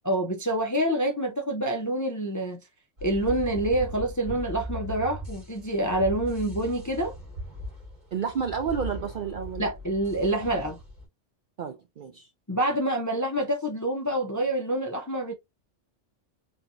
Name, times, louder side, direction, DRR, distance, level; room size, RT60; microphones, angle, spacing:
voice 1, 0.0-2.6 3.0-7.1 9.6-10.8 12.5-15.3, right 1 dB, 25° left, 0.4 m, -27 dB
sound 1, 3.0-11.1, equal, 35° right, 2.5 m, -39 dB
voice 2, 8.1-9.7 11.6-12.3, right 6 dB, 65° right, 0.5 m, -31 dB
4.3 x 2.8 x 2.5 m
omnidirectional pair, 1.3 m